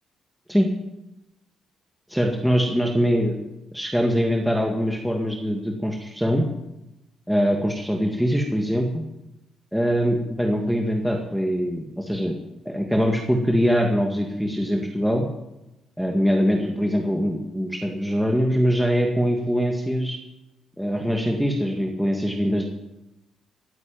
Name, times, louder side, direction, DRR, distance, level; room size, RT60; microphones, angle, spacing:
voice 1, 2.1-3.4 3.7-6.5 7.3-9.0 9.7-12.3 12.7-15.2 16.0-20.2 20.8-22.7, equal, ahead, 1 dB, 2.1 m, -23 dB
16.0 x 8.1 x 9.1 m, 0.93 s
cardioid pair, 90°, 0 cm